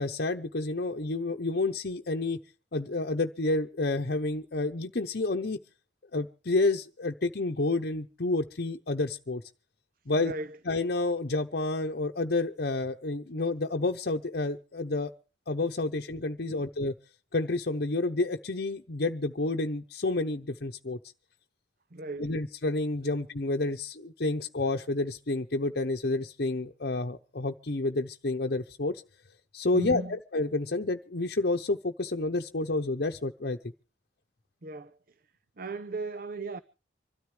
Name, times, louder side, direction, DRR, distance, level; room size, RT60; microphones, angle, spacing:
voice 1, 0.0-2.4 2.7-5.6 6.1-9.4 10.1-10.3 10.7-15.1 15.5-16.9 17.3-21.0 22.2-29.0 29.5-33.6, left 2 dB, 60° left, 0.9 m, -29 dB
voice 2, 10.2-10.6 16.5-16.6 21.9-22.3 23.0-23.1 29.7-30.2 34.6-35.0 35.6-36.6, right 2 dB, 55° right, 0.7 m, -36 dB
25.5 x 13.0 x 3.3 m
head